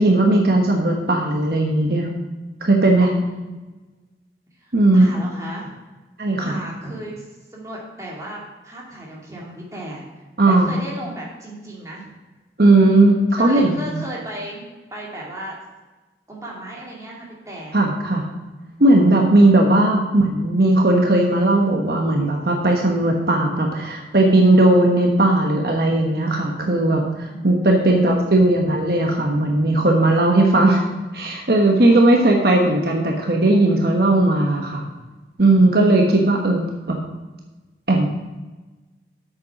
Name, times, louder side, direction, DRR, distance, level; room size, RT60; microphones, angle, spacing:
voice 1, 0.0-2.1 2.6-3.1 4.7-5.1 6.2-6.6 10.4-10.7 12.6-14.0 17.7-18.2 18.8-30.8 31.1-34.8 35.4-36.6 36.9-37.0 37.9-38.1, right 2 dB, 60° right, 1 dB, 1.1 m, -17 dB
voice 2, 4.6-5.7 6.4-7.2 7.5-12.1 12.8-14.6 14.9-15.5 16.3-17.8 27.3-28.0 31.9-32.6, right 1 dB, 20° right, -4 dB, 2.4 m, -36 dB
7.9 x 6.9 x 5.9 m, 1.2 s
head